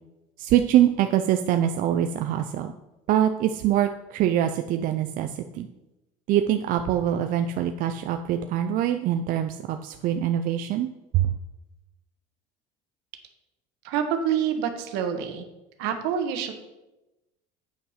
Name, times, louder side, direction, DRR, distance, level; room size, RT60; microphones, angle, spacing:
voice 1, 0.4-2.7 3.1-5.7 6.3-10.9 11.1-11.4, right 11 dB, 55° right, 7 dB, 0.5 m, -24 dB
voice 2, 13.8-15.4 15.8-16.5, right 8 dB, 80° right, 7 dB, 1.4 m, -27 dB
8.7 x 5.7 x 5.7 m, 0.99 s
cardioid pair, 135°, 17 cm